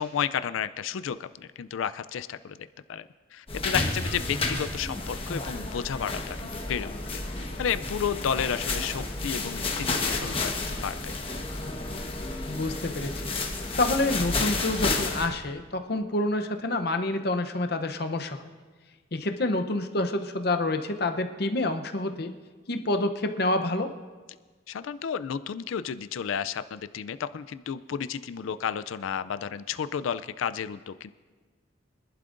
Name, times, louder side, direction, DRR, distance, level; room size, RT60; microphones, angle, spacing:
voice 1, 0.0-2.6 2.9-3.0 3.3-7.2 7.6-11.1 24.7-31.1, left 7 dB, 80° left, 13 dB, 0.4 m, -32 dB
sound 1, 3.5-15.3, left 3 dB, 25° left, 1.2 m, -31 dB
voice 2, 12.5-13.2 13.8-18.4 19.1-22.3 22.7-23.9, left 2 dB, 50° left, 6 dB, 0.7 m, -28 dB
25.0 x 11.5 x 2.6 m, 1.4 s
head